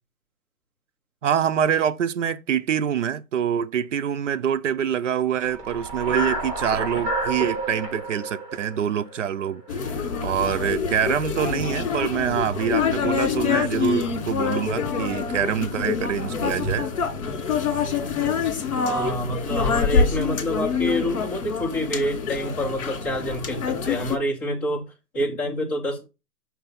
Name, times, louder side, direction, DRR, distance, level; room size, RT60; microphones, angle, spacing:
voice 1, 1.2-9.8 10.2-16.9, right 8 dB, 55° right, 0.5 m, -25 dB
sound 1, 5.4-9.7, right 2 dB, 20° right, 2.5 m, -30 dB
sound 2, 9.7-24.2, left 6 dB, 60° left, 2.0 m, -26 dB
voice 2, 16.3-16.7 18.8-26.1, equal, 15° left, 0.9 m, -27 dB
5.8 x 3.3 x 5.5 m
hypercardioid pair, 175°, 46 cm